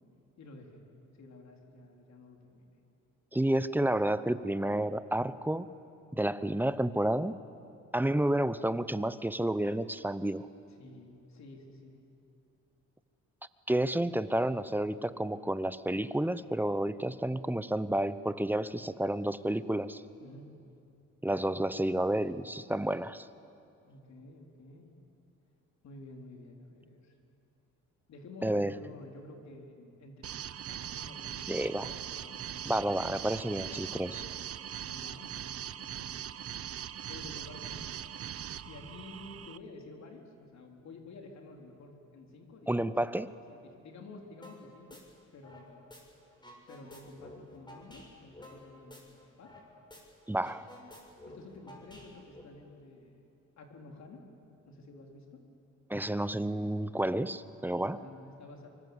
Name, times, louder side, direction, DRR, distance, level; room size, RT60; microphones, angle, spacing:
voice 1, 0.4-0.8 1.1-2.8 10.7-12.0 20.2-20.5 23.8-24.9 25.8-27.1 28.1-30.3 30.6-31.8 32.1-33.0 33.6-34.5 34.9-36.3 37.1-38.0 38.6-42.9 43.5-45.0 45.3-45.9 46.7-49.5 51.3-53.3 53.6-54.2 54.6-55.4 57.8-58.7, left 2 dB, 65° left, 2 dB, 4.0 m, -51 dB
voice 2, 3.3-5.7 6.1-7.4 7.9-10.5 13.7-20.0 21.2-23.3 28.4-28.8 31.5-31.9 32.6-34.2 42.7-43.3 50.3-50.7 55.9-58.0, right 1 dB, 5° right, 14 dB, 0.8 m, -30 dB
sound 1, 30.2-39.6, right 10 dB, 50° right, 0.8 m, -41 dB
sound 2, 44.4-44.6 44.9-46.0 46.3-49.6 49.9-50.0 50.3-52.4, left 1 dB, 15° left, 6.2 m, -51 dB
25.0 x 24.5 x 8.1 m, 2.7 s
cardioid pair, 90°, 30 cm